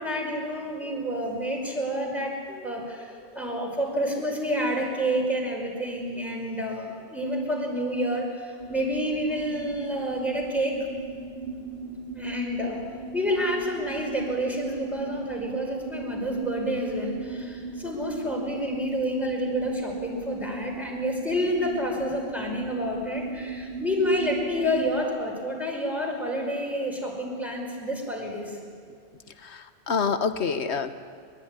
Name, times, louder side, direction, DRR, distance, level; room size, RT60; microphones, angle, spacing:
voice 1, 0.0-10.8 12.1-12.8 13.1-28.6, equal, ahead, -1 dB, 5.4 m, -29 dB
sound 1, 8.6-25.0, right 4 dB, 75° right, 3.5 m, -37 dB
voice 2, 29.4-30.9, left 5 dB, 85° left, 10 dB, 1.5 m, -27 dB
23.0 x 21.5 x 9.9 m, 2.2 s
omnidirectional pair, 1.1 m